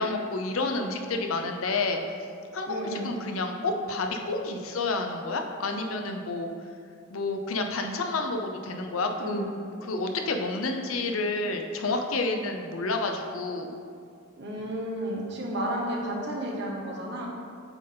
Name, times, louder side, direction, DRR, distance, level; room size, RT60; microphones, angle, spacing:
voice 1, 0.0-2.0 2.5-6.5 7.1-9.5 9.8-13.7, left 3 dB, 80° left, 4 dB, 0.6 m, -29 dB
voice 2, 2.7-3.1 9.2-9.5 14.4-17.3, right 1 dB, 55° right, -2 dB, 1.1 m, -32 dB
8.0 x 3.9 x 3.8 m, 2.3 s
head